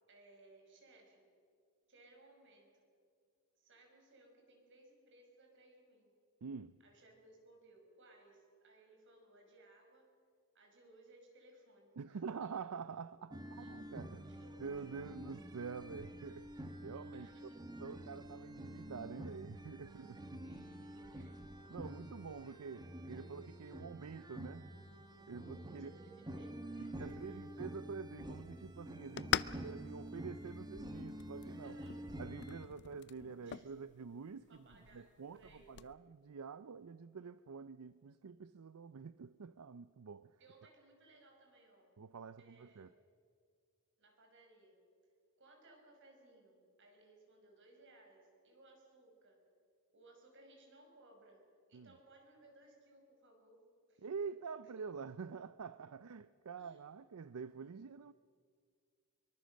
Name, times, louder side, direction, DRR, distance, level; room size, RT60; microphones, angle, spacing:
voice 1, 0.1-1.3 1.9-2.8 3.6-6.1 6.8-10.1 10.5-12.6 13.6-13.8 14.2-14.6 17.1-17.8 20.4-21.4 25.7-27.5 31.6-32.0 33.4-33.9 34.5-35.7 40.4-41.9 42.4-42.9 44.0-44.8 45.4-49.4 49.9-51.4 51.7-54.4 54.6-54.9 56.6-56.8, right 2 dB, 60° right, 5.9 m, -63 dB
voice 2, 6.4-6.8 12.0-14.3 14.6-17.3 17.8-20.4 21.7-24.7 25.3-25.9 26.8-31.8 32.2-34.5 34.9-40.4 42.0-42.9 51.7-51.9 54.0-58.1, right 5 dB, 80° right, 0.5 m, -47 dB
sound 1, 13.3-32.6, right 1 dB, 20° right, 1.4 m, -48 dB
sound 2, 27.0-35.9, left 10 dB, 55° left, 0.5 m, -45 dB
24.5 x 23.5 x 6.5 m
head